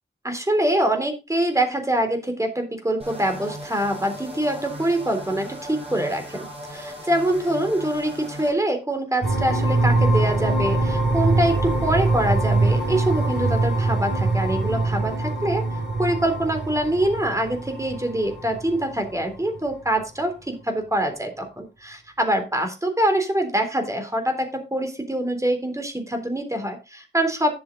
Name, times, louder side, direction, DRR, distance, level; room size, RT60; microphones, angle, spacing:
voice 1, 0.2-15.6 16.0-27.6, right 1 dB, 15° right, 5 dB, 3.5 m, -24 dB
sound 1, 3.0-8.5, right 1 dB, 30° right, 6.6 m, -38 dB
sound 2, 9.2-19.7, right 2 dB, 70° right, 6.4 m, -23 dB
10.5 x 7.8 x 4.0 m, 0.27 s
cardioid pair, 65°, 19 cm